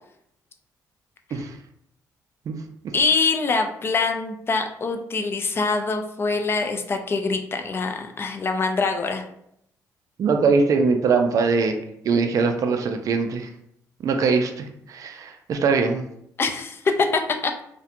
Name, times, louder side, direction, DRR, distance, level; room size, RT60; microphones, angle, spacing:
voice 1, 2.9-9.2 16.4-17.6, left 4 dB, 35° left, 5 dB, 0.4 m, -24 dB
voice 2, 10.2-11.7 12.0-13.5 14.0-16.0, right 4 dB, 55° right, 5 dB, 0.3 m, -22 dB
2.4 x 2.1 x 2.8 m, 0.74 s
cardioid pair, 90°, 7 cm